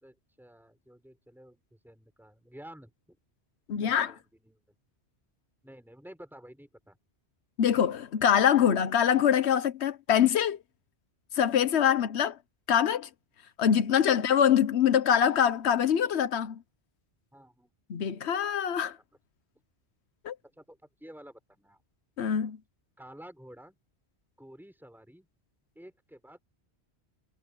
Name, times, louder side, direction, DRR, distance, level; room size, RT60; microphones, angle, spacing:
voice 1, 0.0-3.2 3.7-4.6 5.6-7.0 14.3-14.4 17.3-17.7 18.2-18.3 20.6-21.8 23.0-23.8 24.4-25.3 25.7-26.4, equal, ahead, 4.9 m, -51 dB
voice 2, 3.7-4.1 7.6-10.6 11.3-12.4 12.7-13.1 13.6-16.6 17.9-19.0 20.2-20.3 22.2-22.6, left 9 dB, 90° left, 1.1 m, -24 dB
omnidirectional pair, 1.1 m